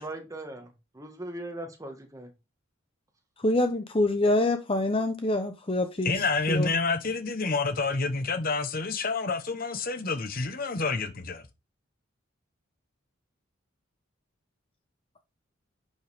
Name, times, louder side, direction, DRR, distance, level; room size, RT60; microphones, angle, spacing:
voice 1, 0.0-2.3, right 1 dB, 15° right, 1.6 m, -39 dB
voice 2, 3.4-6.1 6.5-6.7, left 1 dB, 30° left, 0.8 m, -25 dB
voice 3, 6.0-11.4, left 4 dB, 45° left, 1.0 m, -28 dB
11.0 x 5.4 x 3.5 m
head